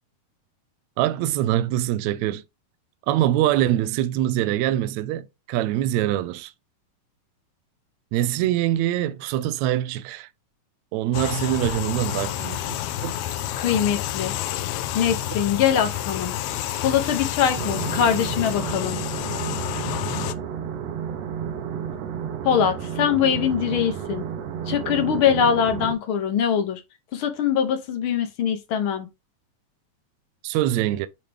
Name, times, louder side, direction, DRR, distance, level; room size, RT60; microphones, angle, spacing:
voice 1, 1.0-2.4 3.1-6.5 8.1-10.3 10.9-13.2 30.4-31.1, right 13 dB, 85° right, 1.6 m, -24 dB
sound 1, 11.1-20.3, left 13 dB, 85° left, 1.6 m, -29 dB
sound 2, 11.2-19.1, left 2 dB, 30° left, 1.1 m, -43 dB
voice 2, 13.6-14.3 14.9-16.3 16.8-19.0 22.4-24.2 24.7-26.8 27.1-29.1, left 8 dB, 65° left, 1.3 m, -22 dB
sound 3, 17.6-25.9, right 8 dB, 65° right, 1.9 m, -31 dB
8.4 x 3.2 x 3.5 m
omnidirectional pair, 3.7 m